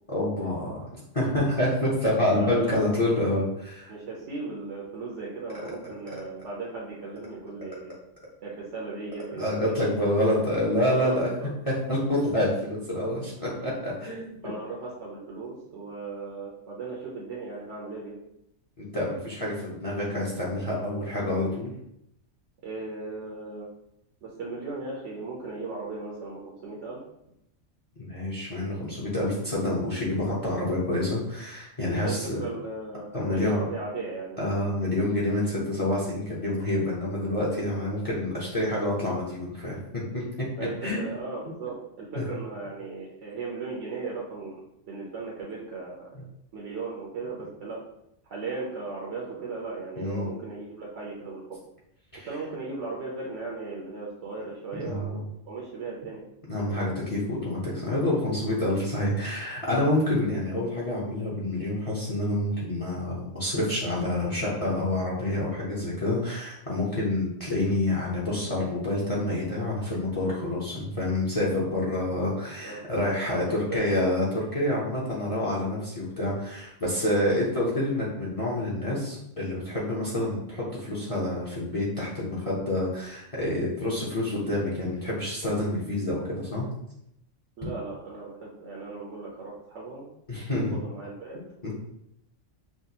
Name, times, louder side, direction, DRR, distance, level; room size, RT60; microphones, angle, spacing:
voice 1, 0.1-0.8 1.1-3.9 5.5-5.7 9.4-11.3 11.7-14.3 18.8-21.7 28.0-32.4 33.1-33.7 34.4-40.2 40.8-41.1 42.1-42.2 50.0-50.3 52.1-52.3 54.8-55.2 56.5-86.7 90.3-90.8 91.6-91.7, left 1 dB, 30° left, -6 dB, 0.9 m, -27 dB
voice 2, 2.4-2.8 3.1-3.2 3.9-8.0 8.4-9.9 10.2-10.4 10.9-11.5 13.4-13.7 14.0-18.2 22.6-23.7 24.2-27.0 31.9-34.4 40.6-44.6 44.9-46.1 46.5-47.8 48.3-51.6 52.3-56.2 72.6-72.8 73.3-73.9 87.6-90.1 90.7-91.4, right 3 dB, 70° right, -4 dB, 1.1 m, -37 dB
5.8 x 2.4 x 2.8 m, 0.79 s
omnidirectional pair, 1.3 m